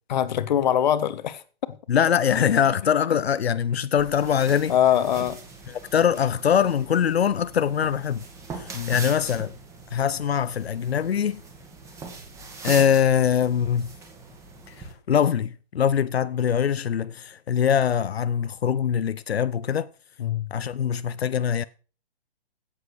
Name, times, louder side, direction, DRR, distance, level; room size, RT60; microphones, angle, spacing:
voice 1, 0.1-1.4 4.7-5.4 8.7-9.0 20.2-20.5, left 10 dB, 45° left, 1.3 m, -23 dB
voice 2, 1.9-4.7 5.7-8.2 8.6-9.5 9.9-11.4 12.6-13.9 14.7-19.9 20.5-21.6, left 8 dB, 85° left, 0.7 m, -23 dB
sound 1, 4.0-14.9, right 3 dB, 10° right, 2.1 m, -41 dB
16.5 x 7.7 x 4.7 m
hypercardioid pair, 155°, 31 cm